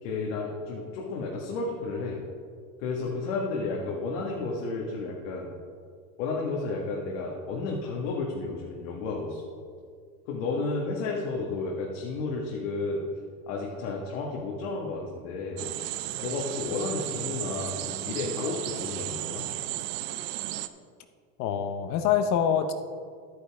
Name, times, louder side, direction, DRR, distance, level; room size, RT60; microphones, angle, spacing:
voice 1, 0.0-2.2 2.8-5.5 6.2-9.4 10.3-13.0 13.5-15.7 16.2-19.5, left 3 dB, 65° left, -2 dB, 1.8 m, -32 dB
sound 1, 15.6-20.7, right 14 dB, 40° right, 0.5 m, -34 dB
voice 2, 21.4-22.7, left 8 dB, 45° left, 9 dB, 0.9 m, -25 dB
11.5 x 9.7 x 3.6 m, 2.1 s
supercardioid pair, 140°, 40 cm